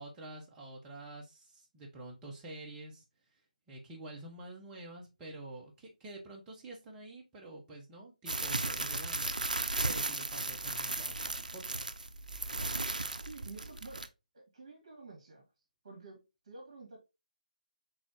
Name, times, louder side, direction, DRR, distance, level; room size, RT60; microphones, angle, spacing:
voice 1, 0.0-3.0 3.7-11.8, right 2 dB, 10° right, 0.9 m, -48 dB
sound 1, 8.3-14.1, right 2 dB, 70° right, 0.5 m, -35 dB
voice 2, 13.2-14.1 14.3-15.5 15.8-17.0, right 3 dB, 35° right, 1.8 m, -50 dB
4.1 x 3.8 x 2.9 m
figure-of-eight pair, 155°, 4 cm